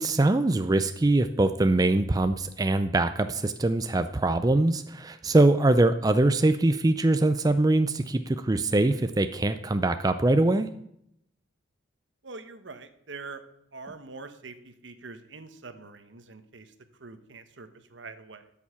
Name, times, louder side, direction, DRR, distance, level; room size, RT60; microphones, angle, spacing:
voice 1, 0.0-10.7, right 2 dB, 20° right, 9 dB, 0.4 m, -23 dB
voice 2, 12.2-13.4 13.7-18.5, right 4 dB, 70° right, 9 dB, 1.1 m, -44 dB
13.0 x 7.2 x 5.7 m, 0.74 s
head